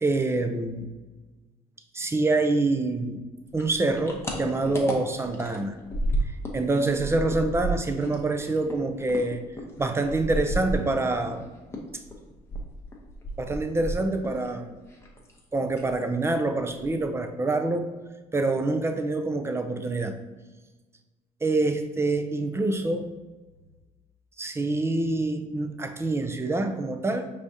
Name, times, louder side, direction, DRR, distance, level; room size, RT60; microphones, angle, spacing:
voice 1, 0.0-0.9 1.9-3.2 3.5-5.8 6.5-9.4 9.8-11.5 13.4-14.8 15.5-17.9 18.3-20.1 21.4-23.1 24.4-27.3, right 2 dB, 15° right, 6 dB, 0.4 m, -26 dB
sound 1, 3.5-6.6 6.9-11.4 11.7-14.5 14.7-15.4 15.7-16.0 16.3-16.4 16.7-17.2, right 1 dB, 15° left, 0.8 m, -32 dB
4.9 x 3.4 x 2.7 m, 1.3 s
cardioid pair, 110°, 17 cm